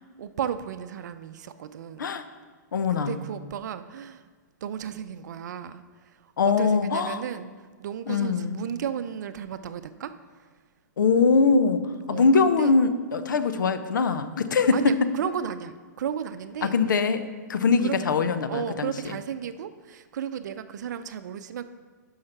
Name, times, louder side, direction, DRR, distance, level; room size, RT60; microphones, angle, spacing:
voice 1, 0.2-2.1 2.9-4.2 4.6-5.8 6.4-7.5 7.8-10.1 12.1-12.7 13.6-13.8 14.7-16.8 17.8-18.0 18.5-21.7, right 8 dB, 65° right, 11 dB, 0.5 m, -34 dB
voice 2, 2.7-3.2 6.4-7.2 8.1-8.6 11.0-11.8 12.1-15.0 16.6-17.2 17.5-19.1, left 4 dB, 80° left, 10 dB, 0.7 m, -22 dB
9.6 x 5.6 x 5.8 m, 1.5 s
hypercardioid pair, 130°, 10 cm